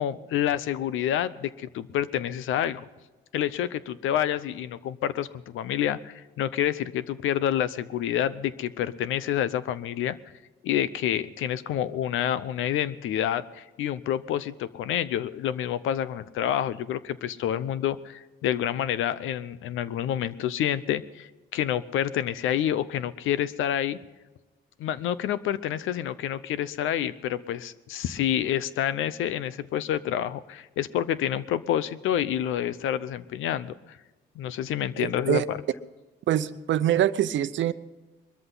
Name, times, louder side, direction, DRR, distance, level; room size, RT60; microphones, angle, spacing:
voice 1, 0.0-2.8 3.3-10.2 10.6-24.0 24.8-33.7 34.4-35.6, left 10 dB, 85° left, 16 dB, 0.8 m, -28 dB
voice 2, 35.0-35.5 36.3-37.7, right 11 dB, 70° right, 13 dB, 0.8 m, -24 dB
21.5 x 14.0 x 4.0 m, 1.2 s
cardioid pair, 90°, 20 cm